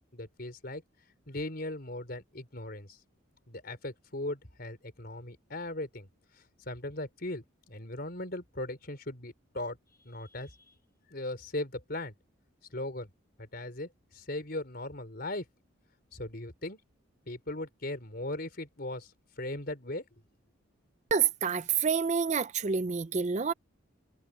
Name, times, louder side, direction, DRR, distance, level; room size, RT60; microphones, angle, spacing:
voice 1, 0.1-0.8 1.3-3.0 3.5-6.1 6.7-10.7 11.1-12.1 12.7-13.1 13.4-15.4 16.1-16.8 17.3-19.1 19.4-20.0, left 1 dB, 50° left, 4.2 m, -38 dB
voice 2, 21.1-23.5, right 6 dB, 35° right, 0.5 m, -28 dB
head